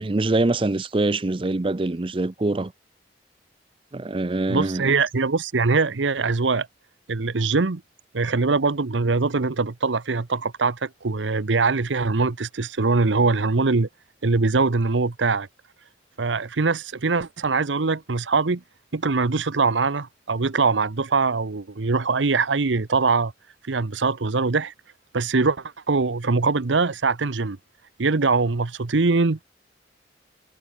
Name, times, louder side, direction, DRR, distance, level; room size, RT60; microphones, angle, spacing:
voice 1, 0.0-2.7 3.9-4.9, right 2 dB, 30° right, 0.5 m, -24 dB
voice 2, 4.5-6.7 7.1-7.8 8.1-13.9 14.2-15.5 16.2-18.6 18.9-23.3 23.7-24.7 25.1-27.6 28.0-29.4, right 4 dB, 90° right, 0.9 m, -22 dB
head